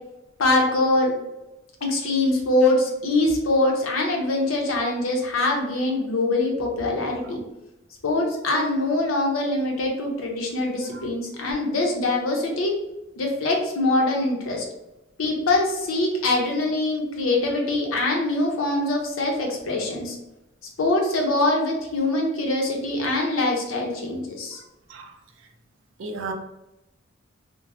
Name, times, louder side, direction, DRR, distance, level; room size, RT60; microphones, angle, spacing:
voice 1, 0.4-1.1 1.8-7.4 8.0-12.7 13.2-14.6 15.2-20.2 20.8-24.6, left 2 dB, 85° left, 0 dB, 0.7 m, -23 dB
voice 2, 26.0-26.3, right 3 dB, 70° right, 4 dB, 0.4 m, -33 dB
3.0 x 2.1 x 2.6 m, 0.95 s
head